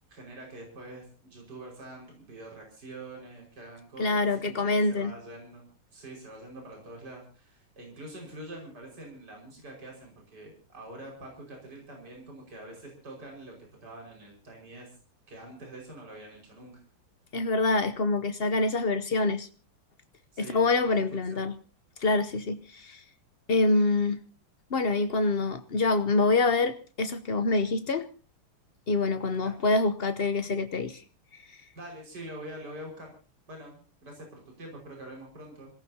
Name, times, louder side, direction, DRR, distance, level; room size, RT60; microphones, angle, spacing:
voice 1, 0.1-5.6 5.9-14.9 15.3-16.8 20.3-20.9 21.3-21.5 29.4-29.5 31.8-33.1 33.5-35.7, right 1 dB, 45° right, 1 dB, 5.9 m, -45 dB
voice 2, 4.0-5.1 17.3-19.5 20.4-21.5 22.0-23.0 23.5-24.2 24.7-28.1 28.9-31.0, left 3 dB, 90° left, 9 dB, 0.5 m, -26 dB
27.0 x 17.5 x 2.8 m, 0.36 s
omnidirectional pair, 2.4 m